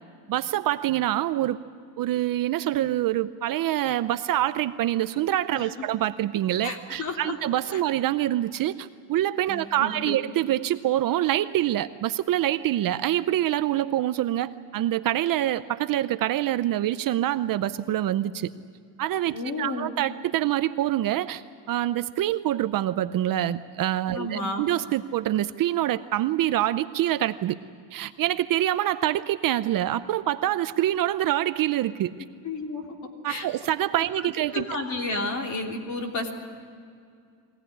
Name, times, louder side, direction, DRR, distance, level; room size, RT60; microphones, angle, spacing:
voice 1, 0.3-1.6 2.0-18.5 19.0-21.4 21.7-27.6 27.9-32.1 33.2-34.7, right 13 dB, 50° right, 12 dB, 0.7 m, -25 dB
voice 2, 6.6-7.3 7.7-7.8 9.5-10.2 19.3-19.9 24.1-24.6 32.4-32.8 33.3-33.5 34.5-36.3, left 2 dB, 40° left, 2 dB, 3.3 m, -31 dB
23.0 x 18.0 x 10.0 m, 2.3 s
cardioid pair, 155°, 45 cm